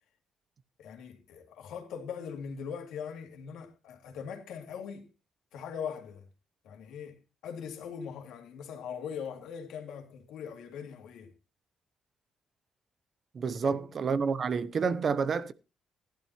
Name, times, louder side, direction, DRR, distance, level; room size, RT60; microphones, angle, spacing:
voice 1, 0.8-5.1 5.5-6.3 6.6-11.3 13.4-13.8, left 7 dB, 85° left, 2.5 m, -41 dB
voice 2, 13.3-15.5, right 5 dB, 50° right, 0.8 m, -29 dB
15.0 x 11.5 x 3.0 m
cardioid pair, 90°, 0 cm